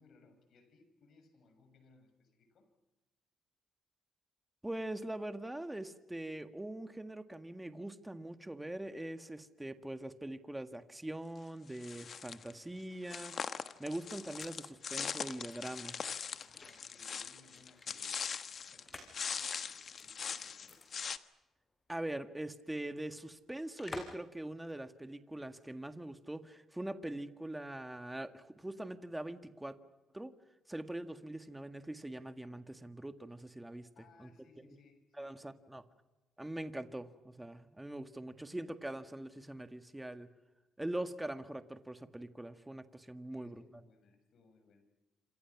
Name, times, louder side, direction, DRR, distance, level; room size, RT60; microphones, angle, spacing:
voice 1, 0.0-2.7 16.4-18.3 18.6-20.8 31.1-31.2 33.9-35.4 35.7-35.9 38.3-38.6 43.3-44.8, left 3 dB, 65° left, 8 dB, 6.8 m, -65 dB
voice 2, 4.6-13.3 13.8-16.0 21.9-29.8 30.1-30.3 30.7-33.9 34.2-34.3 34.6-34.7 35.2-35.8 36.4-40.3 40.8-43.6, right 1 dB, 10° right, 8 dB, 1.8 m, -42 dB
sound 1, 11.8-12.5 13.1-18.8 19.1-21.2, left 6 dB, 50° left, 1.3 m, -41 dB
sound 2, 14.0-19.2 19.5-20.3 20.6-20.9 21.1-21.2 23.8-24.3 24.6-24.7, left 2 dB, 25° left, 6.2 m, -51 dB
28.0 x 27.0 x 6.1 m, 1.1 s
cardioid pair, 90°, 0 cm